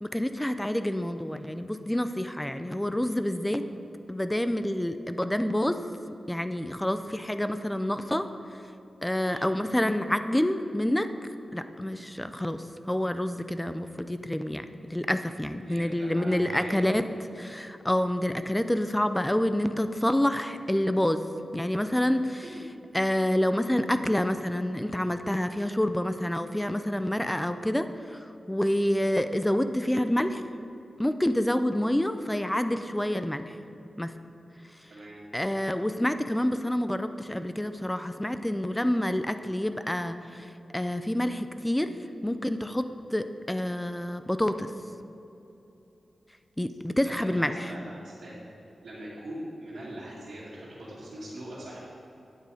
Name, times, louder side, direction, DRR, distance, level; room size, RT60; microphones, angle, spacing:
voice 1, 0.0-3.6 4.1-5.8 6.3-8.3 9.0-11.1 11.5-14.6 14.9-17.0 17.4-21.2 21.5-22.4 22.9-30.4 31.0-33.4 34.0-34.1 35.3-41.9 42.2-42.8 43.1-44.7 46.6-47.7, left 1 dB, 10° left, 9 dB, 0.4 m, -28 dB
voice 2, 15.6-17.0 22.5-22.6 34.9-35.2 47.0-48.4 48.8-51.8, right 1 dB, 65° right, -10 dB, 2.4 m, -41 dB
9.2 x 8.1 x 4.9 m, 2.9 s
wide cardioid pair, 115°, 0 cm